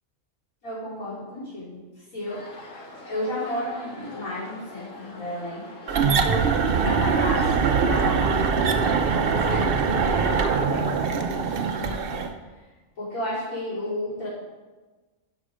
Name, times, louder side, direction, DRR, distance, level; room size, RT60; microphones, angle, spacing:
voice 1, 0.6-1.8 2.1-2.4 3.1-5.6 6.0-6.5 6.8-12.2 13.0-14.3, left 1 dB, 90° left, -13 dB, 4.1 m, -32 dB
sound 1, 2.3-8.0, left 1 dB, 70° left, 1.9 m, -44 dB
sound 2, 5.9-12.3, right 5 dB, 50° right, 0.8 m, -23 dB
11.5 x 6.1 x 5.0 m, 1.3 s
omnidirectional pair, 1.4 m